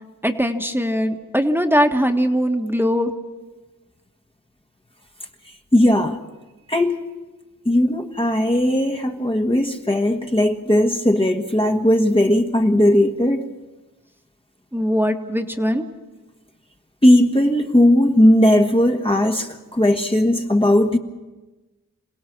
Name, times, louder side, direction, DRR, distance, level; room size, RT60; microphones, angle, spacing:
voice 1, 0.2-3.1 14.7-15.8, equal, 5° right, 4 dB, 1.6 m, -20 dB
voice 2, 5.7-6.2 6.7-7.0 7.6-13.4 17.0-21.0, left 1 dB, 15° left, 2 dB, 1.5 m, -17 dB
27.0 x 17.5 x 6.2 m, 1.1 s
cardioid pair, 50°, 34 cm